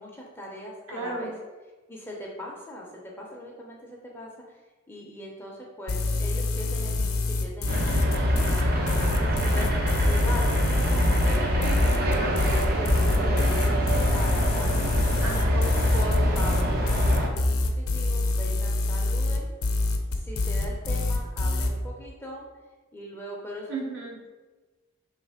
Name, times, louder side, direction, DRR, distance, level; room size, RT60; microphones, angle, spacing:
voice 1, 0.0-1.3 1.9-4.6 4.9-11.7 12.2-14.9 15.9-19.5 20.1-22.5 22.9-23.8, left 1 dB, 10° left, -3 dB, 0.6 m, -40 dB
voice 2, 0.9-1.3 12.0-12.4 13.2-13.5 15.2-15.8 23.7-24.1, right 2 dB, 80° right, -4 dB, 1.3 m, -34 dB
sound 1, 5.9-21.7, left 2 dB, 90° left, 0.6 m, -26 dB
sound 2, 7.7-17.3, equal, 45° right, 0.5 m, -24 dB
3.4 x 3.2 x 4.8 m, 1.3 s
head